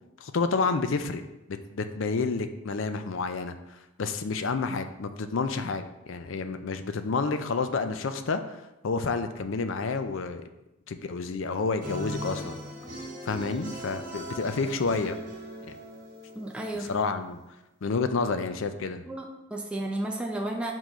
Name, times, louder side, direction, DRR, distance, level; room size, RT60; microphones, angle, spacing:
voice 1, 0.2-1.2 1.5-8.4 8.8-10.5 10.9-12.6 13.3-15.2 16.9-17.4 17.8-19.0, left 4 dB, 70° left, 9 dB, 0.5 m, -29 dB
sound 1, 11.8-17.1, equal, 40° right, 1.3 m, -39 dB
voice 2, 16.4-17.0 19.1-20.7, right 1 dB, 5° right, 0 dB, 0.4 m, -33 dB
5.0 x 3.8 x 5.5 m, 0.95 s
head